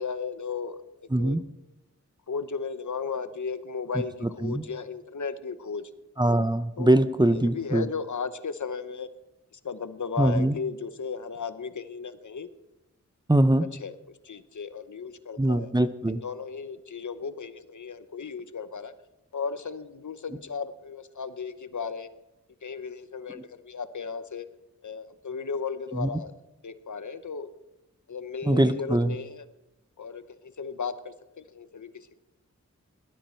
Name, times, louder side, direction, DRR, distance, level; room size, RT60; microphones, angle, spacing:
voice 1, 0.0-1.4 2.3-5.9 6.8-6.9 7.2-9.1 9.5-12.5 13.8-13.9 14.2-15.7 16.1-18.9 19.3-22.1 22.6-24.5 24.8-26.3 26.6-27.5 28.1-29.4 30.0-32.2, left 5 dB, 75° left, 12 dB, 0.9 m, -35 dB
voice 2, 1.1-1.4 4.4-4.6 6.2-7.9 10.2-10.6 13.3-13.7 15.4-16.2 25.9-26.1 28.4-29.2, right 1 dB, 15° right, 11 dB, 0.7 m, -22 dB
17.5 x 12.0 x 4.5 m, 0.97 s
wide cardioid pair, 85°, 30 cm